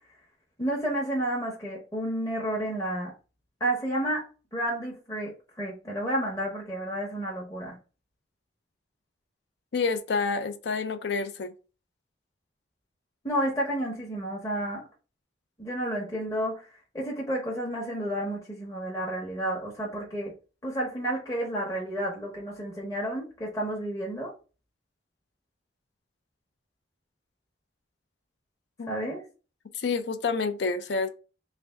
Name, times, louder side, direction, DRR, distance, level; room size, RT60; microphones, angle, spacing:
voice 1, 0.6-3.1 3.6-4.3 4.5-7.8 13.2-14.9 15.6-16.7 16.9-20.3 20.6-24.3 28.9-29.2, right 1 dB, 20° left, 0.8 m, -31 dB
voice 2, 9.7-11.5 28.8-28.9 29.7-31.1, left 4 dB, 75° left, 0.5 m, -28 dB
3.3 x 2.6 x 3.4 m
head